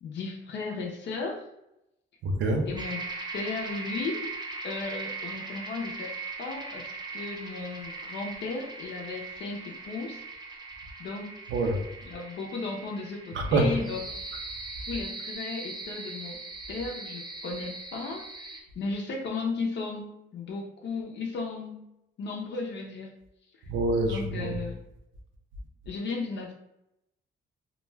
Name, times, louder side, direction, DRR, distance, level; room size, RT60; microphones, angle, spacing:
voice 1, 0.0-1.4 2.7-3.0 3.3-4.3 4.6-10.6 11.0-11.3 12.0-14.0 14.9-16.4 16.7-21.8 22.2-23.1 23.5-23.6 24.0-24.8 25.9-26.5, left 3 dB, 65° left, 0 dB, 0.5 m, -35 dB
voice 2, 2.2-2.7 11.5-11.8 13.3-13.7 23.7-24.6, right 2 dB, 70° right, 2 dB, 0.5 m, -26 dB
sound 1, 2.8-18.6, right 3 dB, 20° right, 0.6 m, -40 dB
2.3 x 2.1 x 3.2 m, 0.87 s
cardioid pair, 90°, 20 cm